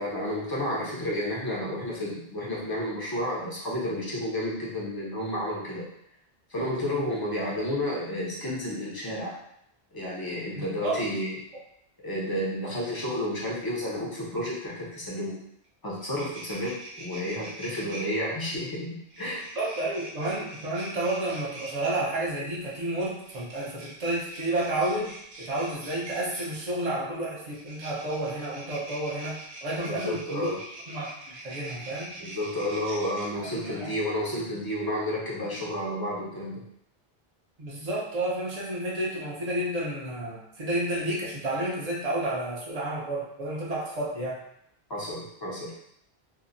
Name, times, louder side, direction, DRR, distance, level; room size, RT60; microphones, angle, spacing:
voice 1, 0.0-5.9 6.5-9.4 9.9-11.4 12.0-15.4 15.8-19.5 29.8-30.6 32.2-36.6 44.9-45.7, left 1 dB, 30° left, -5 dB, 0.5 m, -31 dB
voice 2, 10.5-11.0 19.5-30.5 30.9-32.1 33.4-33.9 37.6-44.4, right 1 dB, 45° right, -5 dB, 0.7 m, -31 dB
sound 1, 15.6-15.7 16.0-18.0 19.1-21.7 23.2-26.6 27.5-33.3, right 2 dB, 80° right, 0.9 m, -43 dB
2.8 x 2.0 x 2.5 m, 0.75 s
omnidirectional pair, 1.1 m